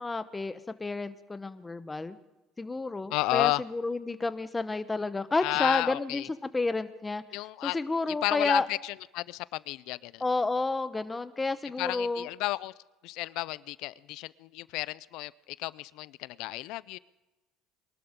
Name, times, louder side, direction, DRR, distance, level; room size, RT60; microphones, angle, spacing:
voice 1, 0.0-2.2 2.6-7.2 7.6-8.7 10.2-12.3, left 3 dB, 15° left, 12 dB, 1.0 m, -30 dB
voice 2, 3.1-3.6 5.4-6.3 7.3-7.8 8.2-10.2 11.8-12.7 13.0-15.3 15.6-17.0, left 19 dB, 75° left, 20 dB, 0.5 m, -32 dB
23.0 x 12.5 x 3.7 m, 1.1 s
supercardioid pair, 100°, 0 cm